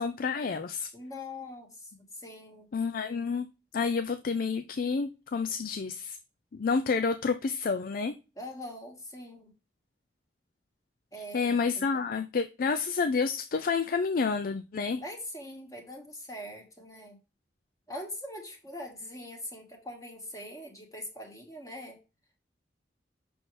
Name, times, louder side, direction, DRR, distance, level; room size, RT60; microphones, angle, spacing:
voice 1, 0.0-0.9 2.7-3.5 3.7-6.2 6.5-8.1 11.2-15.0, left 5 dB, 55° left, 0.4 m, -29 dB
voice 2, 0.9-1.9 2.2-2.7 8.4-9.5 11.1-11.8 15.0-17.2 17.9-22.0, left 1 dB, 20° left, 1.8 m, -42 dB
6.2 x 6.2 x 3.3 m
head